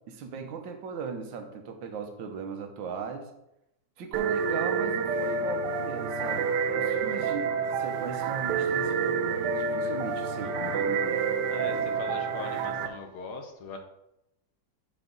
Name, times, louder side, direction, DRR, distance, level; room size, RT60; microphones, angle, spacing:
voice 1, 0.1-3.3 4.0-6.5 6.8-12.0, right 5 dB, 85° right, 5 dB, 1.7 m, -38 dB
sound 1, 4.1-12.9, right 5 dB, 70° right, 1.2 m, -28 dB
voice 2, 6.8-7.3 10.4-10.9 11.5-13.8, left 4 dB, 65° left, 5 dB, 1.4 m, -41 dB
9.8 x 4.6 x 3.9 m, 0.85 s
omnidirectional pair, 2.0 m